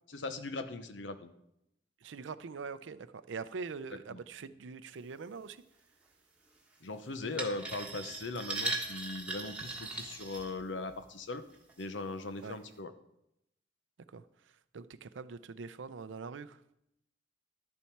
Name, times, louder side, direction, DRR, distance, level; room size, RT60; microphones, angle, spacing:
voice 1, 0.1-1.3 4.1-4.2 6.8-11.4 11.8-12.9, left 3 dB, 80° left, 10 dB, 0.8 m, -39 dB
voice 2, 2.0-5.6 12.4-12.6 14.1-14.2 14.7-16.6, right 5 dB, 90° right, 14 dB, 0.5 m, -43 dB
sound 1, 7.4-11.0 11.5-11.8 12.4-12.5, right 3 dB, 5° right, 1.4 m, -39 dB
11.5 x 7.1 x 4.6 m, 0.81 s
head